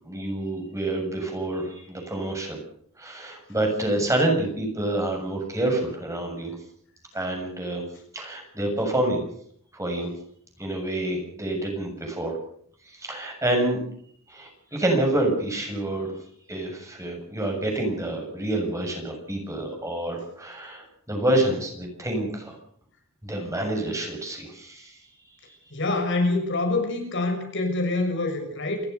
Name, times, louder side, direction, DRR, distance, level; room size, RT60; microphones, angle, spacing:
voice 1, 0.0-2.6 3.0-6.6 7.1-7.8 8.1-9.2 9.7-10.1 10.6-12.4 12.8-13.8 14.3-16.1 16.5-22.6 23.2-25.0 25.4-25.6, right 1 dB, 15° right, 2 dB, 7.1 m, -27 dB
voice 2, 25.7-28.8, left 2 dB, 60° left, 4 dB, 6.5 m, -25 dB
29.0 x 15.0 x 6.9 m, 0.63 s
head